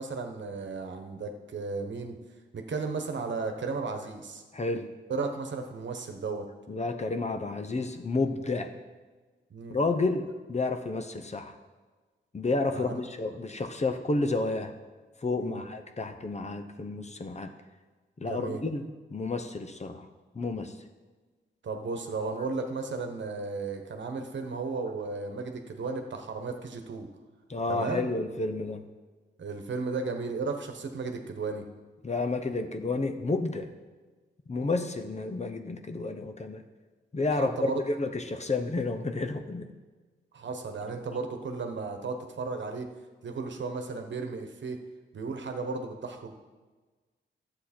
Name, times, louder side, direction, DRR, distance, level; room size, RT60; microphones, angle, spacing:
voice 1, 0.0-2.1 2.5-4.4 5.1-6.5 9.5-9.8 12.7-13.0 15.4-15.6 18.2-18.6 21.6-27.1 27.7-28.1 29.4-31.6 37.4-37.8 40.3-42.9 43.2-44.8 45.1-46.4, right 4 dB, 65° right, 5 dB, 1.2 m, -34 dB
voice 2, 4.5-4.9 6.7-8.7 9.7-11.5 12.3-14.7 15.2-17.5 18.2-18.8 19.1-20.1 20.3-20.7 27.5-28.9 32.0-33.7 34.5-36.6 37.1-39.7, left 3 dB, 35° left, 7 dB, 0.9 m, -30 dB
11.5 x 7.8 x 4.4 m, 1.3 s
cardioid pair, 70°, 20 cm